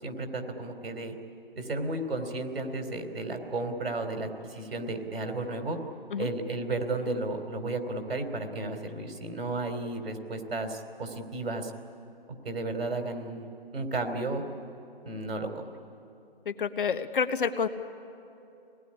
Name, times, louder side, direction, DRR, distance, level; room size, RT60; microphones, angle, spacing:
voice 1, 0.0-1.1 1.5-5.8 6.2-11.7 12.4-13.5 13.7-14.4 15.0-15.5, right 2 dB, 75° right, 5 dB, 3.5 m, -33 dB
voice 2, 16.4-17.7, left 6 dB, 60° left, 9 dB, 1.3 m, -28 dB
25.5 x 19.0 x 10.0 m, 2.8 s
hypercardioid pair, 155°, 30 cm